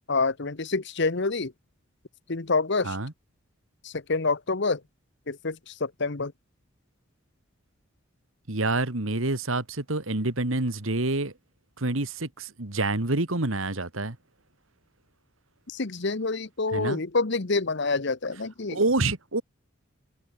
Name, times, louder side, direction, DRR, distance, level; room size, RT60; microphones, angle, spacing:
voice 1, 0.1-1.5 2.3-3.0 3.8-4.8 5.3-6.3 15.7-18.8, left 3 dB, 55° left, 1.1 m, -27 dB
voice 2, 8.5-11.3 11.8-14.2 16.7-17.0 18.7-19.4, right 2 dB, 75° right, 2.2 m, -27 dB
head